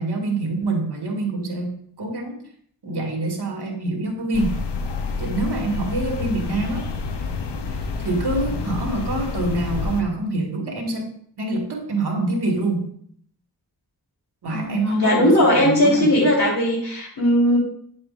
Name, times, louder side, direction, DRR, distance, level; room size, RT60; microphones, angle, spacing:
voice 1, 0.0-1.7 2.0-2.4 2.8-4.6 5.2-6.9 7.7-11.1 11.4-12.9 14.4-16.3, right 2 dB, 75° right, 1 dB, 1.8 m, -26 dB
sound 1, 4.3-10.0, left 4 dB, 85° left, 0.8 m, -28 dB
voice 2, 14.5-17.6, equal, 65° left, -2 dB, 3.2 m, -18 dB
9.2 x 7.4 x 2.5 m, 0.63 s
wide cardioid pair, 90°, 40 cm